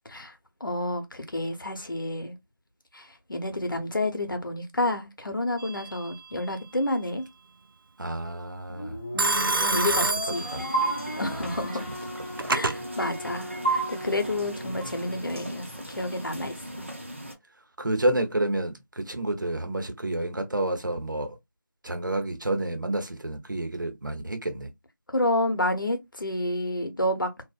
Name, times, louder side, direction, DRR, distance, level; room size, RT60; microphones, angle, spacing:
voice 1, 0.6-2.3 2.9-7.3 9.1-10.4 11.2-11.9 12.5-16.9 25.1-27.3, left 1 dB, 75° left, 0.8 m, -30 dB
Telephone, 5.6-6.1 9.2-11.0 12.0-12.8, right 2 dB, 90° right, 0.4 m, -27 dB
voice 2, 8.0-9.0 9.7-10.1 10.5-10.6 11.3-11.5 11.8-11.9 12.4-12.6 17.8-21.4 21.8-24.7, right 1 dB, 65° right, 0.8 m, -29 dB
sound 1, 8.7-15.2, equal, 35° left, 0.6 m, -38 dB
sound 2, 10.3-17.3, right 2 dB, 35° right, 0.5 m, -34 dB
2.5 x 2.1 x 2.3 m
figure-of-eight pair, 175°, 11 cm